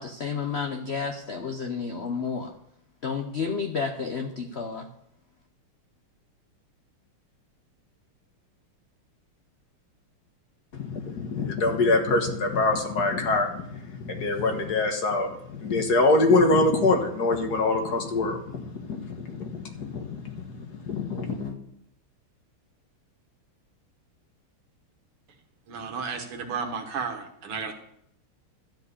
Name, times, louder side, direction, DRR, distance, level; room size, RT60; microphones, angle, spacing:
voice 1, 0.0-2.5 3.0-4.9, left 5 dB, 75° left, 5 dB, 0.6 m, -31 dB
voice 2, 10.7-21.6, left 2 dB, 50° left, 4 dB, 1.8 m, -25 dB
voice 3, 25.7-27.7, right 5 dB, 85° right, 5 dB, 2.3 m, -33 dB
12.5 x 5.0 x 8.2 m, 0.72 s
omnidirectional pair, 2.4 m